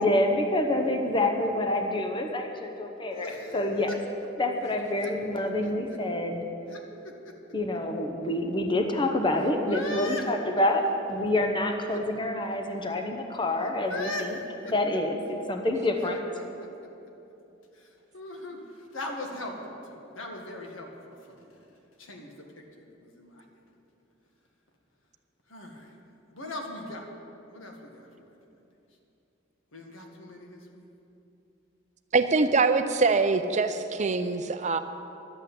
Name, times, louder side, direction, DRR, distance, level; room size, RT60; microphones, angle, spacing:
voice 1, 0.0-3.9 4.4-6.5 7.5-10.8 11.1-14.1 14.7-16.2, left 1 dB, 25° left, 4 dB, 0.9 m, -27 dB
voice 2, 3.1-4.0 5.0-6.0 6.7-7.3 9.7-10.3 11.9-12.0 13.3-13.4 13.9-14.3 14.6-14.7 16.0-16.7 17.7-21.6 22.0-23.6 25.5-26.0 26.3-27.1 27.5-28.3 29.7-30.9, left 1 dB, 70° left, 2 dB, 1.8 m, -40 dB
voice 3, 32.1-34.8, right 4 dB, 35° right, 9 dB, 0.5 m, -24 dB
11.5 x 8.3 x 8.4 m, 2.9 s
head